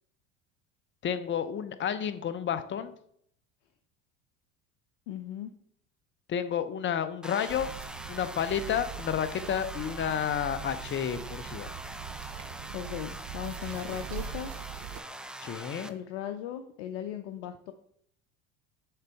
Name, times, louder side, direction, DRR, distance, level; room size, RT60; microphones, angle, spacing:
voice 1, 1.0-3.0 6.3-7.7 8.1-11.7 15.4-15.9, left 8 dB, 30° left, 11 dB, 0.7 m, -31 dB
voice 2, 5.1-5.5 12.7-14.5 15.9-17.7, left 10 dB, 70° left, 7 dB, 0.6 m, -37 dB
sound 1, 7.2-15.9, right 1 dB, ahead, 0.4 m, -43 dB
sound 2, 7.5-15.0, right 10 dB, 50° right, 0.6 m, -42 dB
6.7 x 3.9 x 4.5 m, 0.68 s
hypercardioid pair, 80°, 37 cm